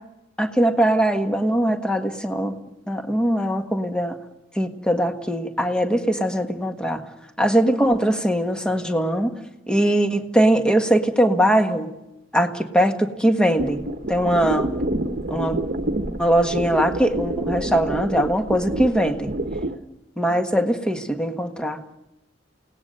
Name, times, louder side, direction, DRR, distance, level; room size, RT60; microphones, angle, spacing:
voice 1, 0.4-2.6 2.9-4.2 4.6-7.0 7.4-9.3 9.7-11.9 12.3-13.8 14.1-14.7 15.3-15.6 16.2-19.3 20.2-22.0, right 1 dB, 5° left, 5 dB, 1.6 m, -21 dB
sound 1, 13.6-19.8, right 1 dB, 50° right, 1.1 m, -28 dB
29.0 x 18.5 x 6.7 m, 0.92 s
head